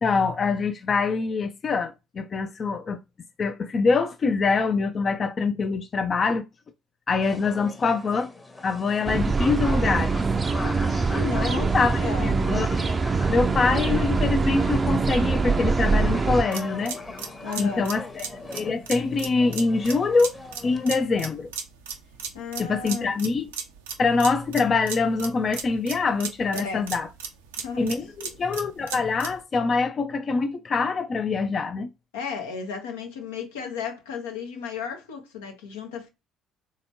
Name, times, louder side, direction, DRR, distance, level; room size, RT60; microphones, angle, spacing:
voice 1, 0.0-3.0 3.4-6.4 7.1-8.3 8.6-10.2 11.4-13.0 13.3-17.0 17.6-18.3 18.5-20.3 20.6-21.5 22.6-23.5 24.0-27.1 27.8-31.9, left 4 dB, 40° left, 0.4 m, -24 dB
sound 1, 7.2-21.0, left 3 dB, 25° left, 0.9 m, -40 dB
sound 2, 9.1-16.4, right 4 dB, 30° right, 0.4 m, -23 dB
voice 2, 11.1-12.4 17.4-17.9 22.3-23.1 26.5-26.9 27.6-27.9 32.1-36.1, left 6 dB, 80° left, 0.7 m, -34 dB
sound 3, 16.5-29.4, right 6 dB, 85° right, 0.5 m, -37 dB
3.4 x 2.9 x 2.7 m
hypercardioid pair, 55°, 0 cm